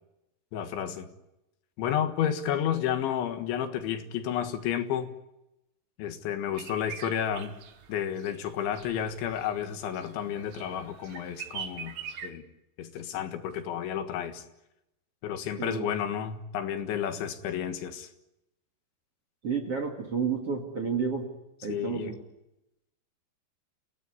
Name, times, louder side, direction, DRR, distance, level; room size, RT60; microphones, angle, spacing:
voice 1, 0.5-1.1 1.8-5.1 6.0-7.5 7.9-12.0 12.2-12.4 12.8-14.4 15.2-18.1 21.7-22.1, left 9 dB, 80° left, 3.9 m, -31 dB
sound 1, 6.6-12.3, right 7 dB, 80° right, 1.5 m, -44 dB
voice 2, 15.6-15.9 19.4-21.3 21.6-22.2, right 5 dB, 40° right, 2.5 m, -30 dB
29.5 x 17.0 x 9.7 m
omnidirectional pair, 5.4 m